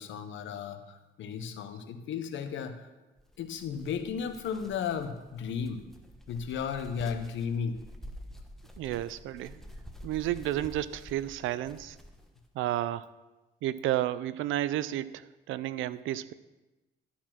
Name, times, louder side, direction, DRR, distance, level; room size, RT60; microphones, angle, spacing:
voice 1, 0.0-2.9 3.4-5.9 6.3-7.8, left 7 dB, 75° left, 8 dB, 0.9 m, -34 dB
sound 1, 3.2-12.4, left 1 dB, ahead, 1.1 m, -49 dB
voice 2, 8.8-9.6 10.0-12.0 12.6-13.1 13.6-16.3, right 13 dB, 85° right, 17 dB, 0.5 m, -32 dB
12.5 x 4.3 x 6.0 m, 1.1 s
cardioid pair, 90°, 20 cm